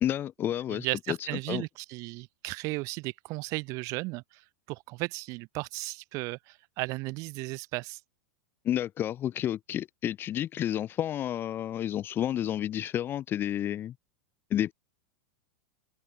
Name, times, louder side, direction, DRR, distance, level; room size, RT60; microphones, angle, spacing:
voice 1, 0.0-1.2 1.5-1.6 8.6-13.9 14.5-14.7, left 11 dB, 30° left, 0.4 m, -30 dB
voice 2, 0.7-8.0, right 24 dB, 45° right, 0.4 m, -35 dB
open air
hypercardioid pair, 95°, 8 cm